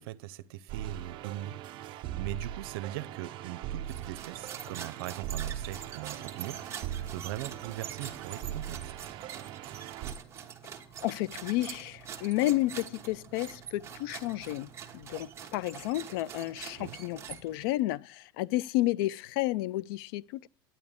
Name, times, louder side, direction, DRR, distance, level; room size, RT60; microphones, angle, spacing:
voice 1, 0.0-1.6 1.8-6.6 7.1-8.9 16.7-17.0, right 14 dB, 80° right, 0.7 m, -40 dB
sound 1, 0.7-10.1, right 11 dB, 40° right, 0.6 m, -40 dB
sound 2, 3.8-17.8, right 8 dB, 20° right, 1.3 m, -45 dB
voice 2, 11.0-20.5, left 17 dB, 70° left, 0.4 m, -31 dB
10.5 x 9.5 x 3.6 m
supercardioid pair, 150°, 13 cm